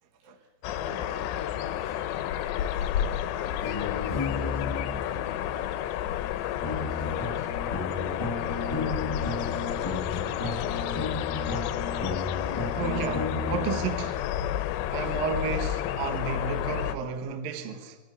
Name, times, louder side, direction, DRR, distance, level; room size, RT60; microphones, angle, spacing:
voice 1, 0.2-6.1 6.6-10.4, right 1 dB, 80° right, 9.9 m, -48 dB
sound 1, 0.6-17.0, left 12 dB, 80° left, 2.9 m, -31 dB
sound 2, 2.3-10.8 11.1-11.3 11.7-12.5 12.9-13.2 13.5-13.6 13.7-14.2 14.7-15.2, left 8 dB, 55° left, 3.2 m, -38 dB
sound 3, 3.6-5.2 6.6-14.4, left 3 dB, 35° left, 0.3 m, -34 dB
voice 2, 12.8-14.3 14.9-18.0, right 6 dB, 60° right, 2.7 m, -32 dB
25.5 x 24.0 x 5.5 m
omnidirectional pair, 5.4 m